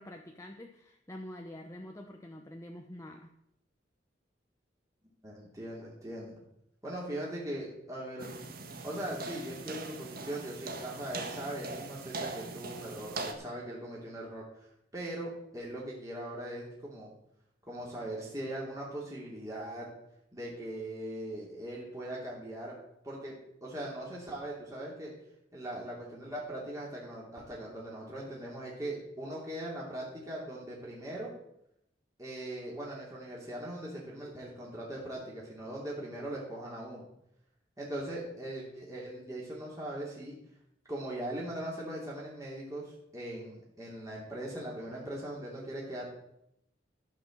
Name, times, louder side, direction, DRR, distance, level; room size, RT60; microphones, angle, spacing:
voice 1, 0.0-3.3, left 1 dB, 15° left, 2 dB, 0.9 m, -46 dB
voice 2, 5.2-6.4 6.8-8.3 8.8-14.4 14.9-17.1 17.6-19.9 20.3-22.7 23.0-23.3 23.6-25.1 25.5-31.3 32.2-37.1 37.8-40.3 40.9-46.0, right 1 dB, 20° right, -5 dB, 2.9 m, -40 dB
sound 1, 8.2-13.3, right 3 dB, 55° right, 1.6 m, -41 dB
14.5 x 6.0 x 7.4 m, 0.80 s
head